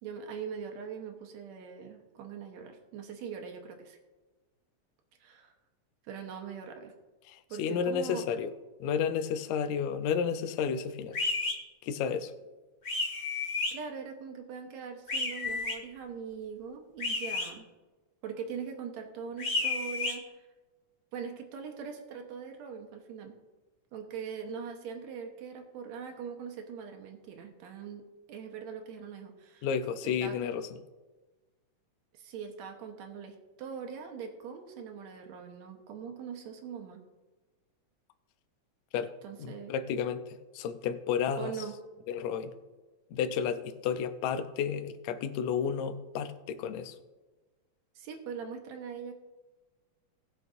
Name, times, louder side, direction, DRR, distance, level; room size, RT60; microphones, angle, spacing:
voice 1, 0.0-4.0 5.2-5.5 6.0-6.9 7.5-8.2 13.7-17.7 18.2-20.5 21.1-23.4 23.9-28.0 28.3-29.7 30.0-30.3 32.1-37.0 39.2-39.7 41.4-41.8 48.0-49.1, right 6 dB, 70° right, 4 dB, 2.3 m, -41 dB
voice 2, 7.3-8.5 8.8-11.2 11.8-12.3 29.6-30.7 38.9-39.1 39.4-41.5 42.1-42.5 43.1-47.0, left 7 dB, 75° left, 9 dB, 1.9 m, -32 dB
sound 1, 11.1-11.5 12.8-13.7 15.1-15.7 17.0-17.5 19.4-20.1, left 3 dB, 30° left, 1.3 m, -31 dB
18.5 x 6.7 x 2.6 m, 1.2 s
omnidirectional pair, 3.4 m